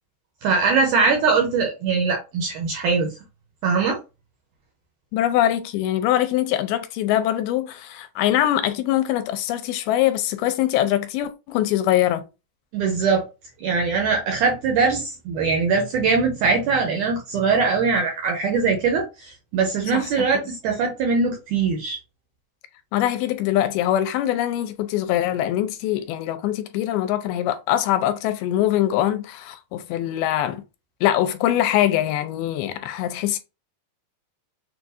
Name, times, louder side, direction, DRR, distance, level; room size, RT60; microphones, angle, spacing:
voice 1, 0.4-3.1 3.6-4.0 12.7-13.2 13.6-22.0, right 5 dB, 75° right, 1.9 m, -21 dB
voice 2, 5.1-12.2 19.9-20.1 22.9-30.6 31.0-33.4, left 12 dB, 80° left, 2.4 m, -23 dB
6.5 x 2.4 x 2.6 m
omnidirectional pair, 4.5 m